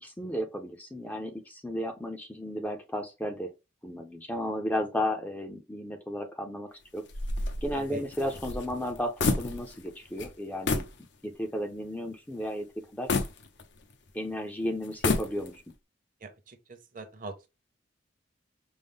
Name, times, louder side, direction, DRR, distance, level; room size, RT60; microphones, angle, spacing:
voice 1, 0.0-3.5 3.8-7.0 7.6-10.9 11.2-12.7 12.9-13.1 14.1-15.6, equal, 10° left, 0.5 m, -34 dB
sound 1, 7.1-9.9 10.2-10.3 10.7-11.0 11.5-11.6 13.1-14.1 14.8-15.7, left 3 dB, 65° left, 0.6 m, -30 dB
voice 2, 16.2-17.5, right 3 dB, 45° right, 0.7 m, -42 dB
5.3 x 2.0 x 3.5 m
head